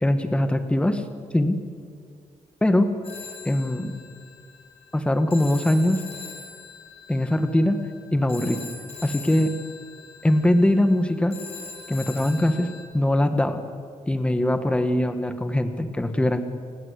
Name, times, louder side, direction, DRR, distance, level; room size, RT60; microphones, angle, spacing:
voice 1, 0.0-1.0 1.3-1.6 2.6-2.9 3.4-3.9 4.9-6.0 7.1-7.8 8.1-8.6 9.0-9.5 10.2-11.3 11.9-12.7 12.9-13.6 14.1-16.4, left 1 dB, 10° left, 8 dB, 1.8 m, -21 dB
Telephone, 3.0-12.8, left 5 dB, 60° left, 6.7 m, -42 dB
29.5 x 21.0 x 8.5 m, 2.1 s
wide cardioid pair, 165°, 12 cm